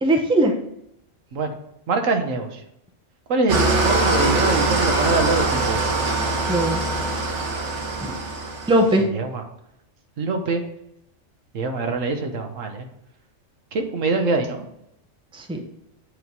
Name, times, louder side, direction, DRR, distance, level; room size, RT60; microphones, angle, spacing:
voice 1, 0.0-0.5 6.5-6.8 8.0-8.2 8.7-9.1 15.3-15.6, right 1 dB, 5° right, 2 dB, 0.7 m, -19 dB
voice 2, 1.9-2.6 3.3-5.8 9.1-9.4 10.2-10.6 11.5-12.9 13.7-14.7, right 3 dB, 85° right, 4 dB, 1.4 m, -24 dB
Engine starting / Idling, 3.5-8.9, right 2 dB, 70° right, 1.4 m, -22 dB
8.2 x 3.2 x 5.4 m, 0.77 s
omnidirectional pair, 1.3 m